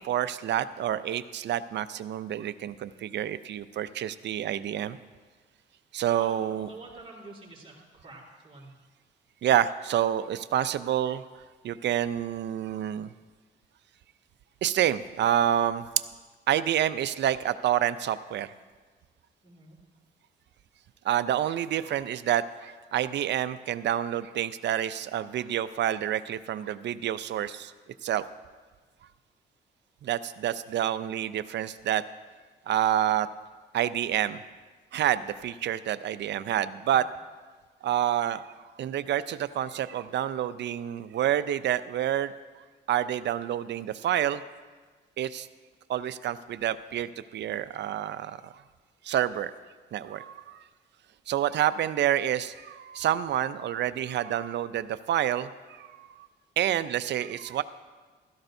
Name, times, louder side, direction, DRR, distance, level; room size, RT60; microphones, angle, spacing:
voice 1, 0.0-5.0 5.9-6.7 9.4-11.3 11.6-13.1 14.6-15.9 16.5-18.5 21.0-27.7 28.0-28.2 30.0-32.0 32.7-33.3 33.7-34.4 34.9-37.1 37.8-38.4 38.8-42.3 42.9-44.4 45.2-45.5 45.9-48.5 49.0-49.5 49.9-50.6 51.3-56.3 56.6-57.6, right 11 dB, 65° right, 14 dB, 0.5 m, -28 dB
voice 2, 6.2-8.7 19.4-19.8, right 2 dB, 30° right, -4 dB, 3.8 m, -47 dB
16.0 x 13.5 x 2.7 m, 1.4 s
cardioid pair, 90°, 20 cm